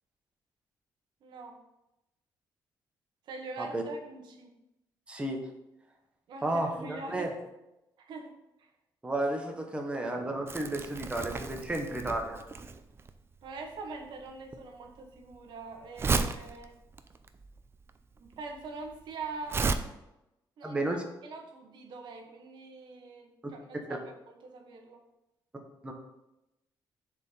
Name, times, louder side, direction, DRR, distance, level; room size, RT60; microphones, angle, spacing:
voice 1, 1.2-1.6 3.3-4.5 6.3-7.3 8.0-8.3 8.6-8.7 13.4-16.8 18.2-19.9 20.6-20.8 21.2-24.0 24.4-25.0, right 3 dB, 70° right, 3 dB, 1.3 m, -43 dB
voice 2, 5.1-5.4 6.4-7.3 9.0-12.4 20.6-21.0 23.9-24.0 25.8-25.9, right 1 dB, 15° right, 2 dB, 1.2 m, -32 dB
Crumpling crinkling, 10.5-19.8, right 4 dB, 30° right, 0.5 m, -34 dB
7.1 x 4.4 x 5.5 m, 0.91 s
cardioid pair, 120°, 8 cm